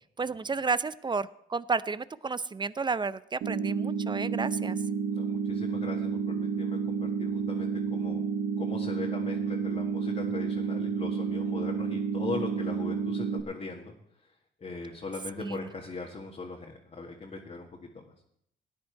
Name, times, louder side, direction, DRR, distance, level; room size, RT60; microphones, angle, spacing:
voice 1, 0.2-4.8 15.4-15.6, right 4 dB, 25° right, 16 dB, 0.5 m, -31 dB
sound 1, 3.4-13.4, right 6 dB, 75° right, 1.0 m, -30 dB
voice 2, 5.1-8.2 8.6-13.9 14.6-18.2, left 3 dB, 35° left, -1 dB, 1.9 m, -40 dB
17.5 x 9.5 x 4.6 m, 0.72 s
cardioid pair, 90°, 20 cm